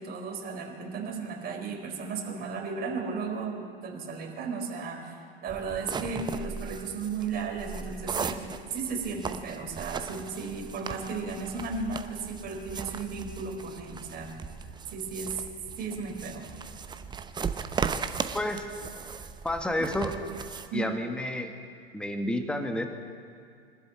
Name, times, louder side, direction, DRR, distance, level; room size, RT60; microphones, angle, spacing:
voice 1, 0.0-14.4 14.9-15.4 15.8-16.5 20.7-20.9, right 4 dB, 30° right, 1 dB, 4.1 m, -35 dB
sound 1, 5.5-20.7, right 6 dB, 15° right, 0.8 m, -37 dB
voice 2, 18.3-18.7 19.4-20.2 20.7-21.5 21.9-22.9, left 1 dB, 5° left, 6 dB, 1.5 m, -30 dB
23.5 x 13.0 x 8.5 m, 2.3 s
figure-of-eight pair, 95°, 31 cm